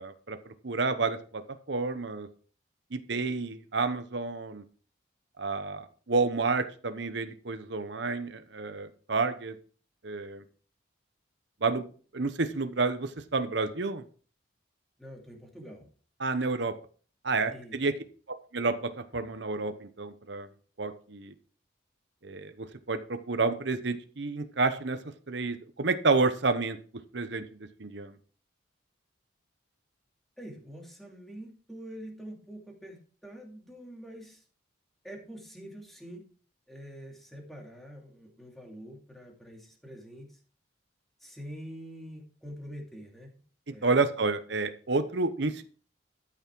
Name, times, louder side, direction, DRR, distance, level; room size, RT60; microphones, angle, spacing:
voice 1, 0.0-1.4 1.7-2.3 2.9-4.6 5.4-9.6 10.0-10.4 11.6-11.9 12.1-14.0 16.2-16.7 17.2-17.9 18.5-20.5 20.8-21.3 22.2-25.0 25.3-26.8 27.1-27.4 27.8-28.1 43.8-45.6, right 3 dB, 60° right, 9 dB, 0.9 m, -30 dB
voice 2, 15.0-15.9 17.5-17.8 30.4-34.4 35.0-36.2 36.7-40.4 41.2-43.3 43.7-43.9, equal, ahead, 0 dB, 2.5 m, -45 dB
13.0 x 5.9 x 4.6 m, 0.41 s
head